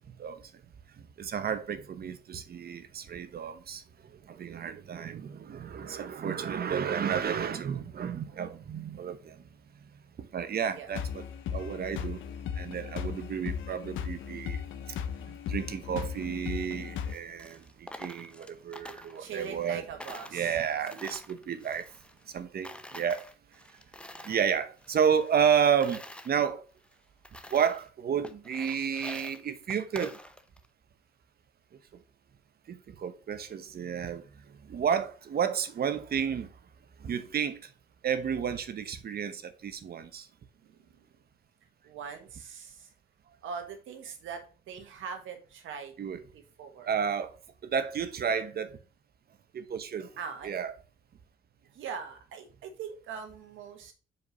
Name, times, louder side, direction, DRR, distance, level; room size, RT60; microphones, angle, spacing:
voice 1, 1.2-3.8 4.3-9.4 10.2-11.2 11.5-12.2 12.5-14.6 15.5-19.8 20.3-21.9 22.3-23.2 24.2-26.6 27.5-30.2 32.7-34.2 34.6-36.5 37.0-37.6 38.0-40.3 46.0-46.2 46.9-47.3 47.6-48.8 49.5-50.1 50.4-50.7, right 7 dB, 50° right, 1.0 m, -31 dB
voice 2, 6.6-7.0 10.7-10.9 15.4-15.5 16.5-16.9 19.2-20.6 24.1-24.5 40.6-41.2 41.8-42.9 43.4-45.9 46.3-46.9 50.2-50.6 51.7-53.9, right 6 dB, 80° right, 1.6 m, -42 dB
sound 1, 10.9-17.1, left 8 dB, 80° left, 0.8 m, -37 dB
Coin (dropping), 16.9-19.7 20.0-22.4 22.6-24.5 24.8-26.3 26.8-26.9 27.2-27.9 28.2-30.7, left 1 dB, 5° left, 0.7 m, -47 dB
5.3 x 4.7 x 5.2 m
cardioid pair, 90°, 20 cm